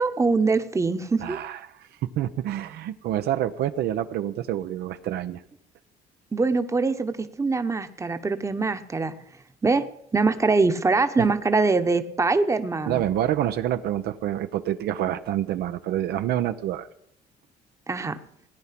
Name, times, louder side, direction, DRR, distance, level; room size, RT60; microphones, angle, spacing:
voice 1, 0.0-1.4 6.3-9.1 9.6-9.9 10.1-13.0 17.9-18.2, right 3 dB, 15° right, 9 dB, 1.0 m, -23 dB
voice 2, 1.2-1.6 2.2-5.4 12.9-16.9, right 12 dB, 75° right, 10 dB, 0.8 m, -27 dB
17.5 x 9.7 x 5.9 m, 0.73 s
cardioid pair, 110°, 17 cm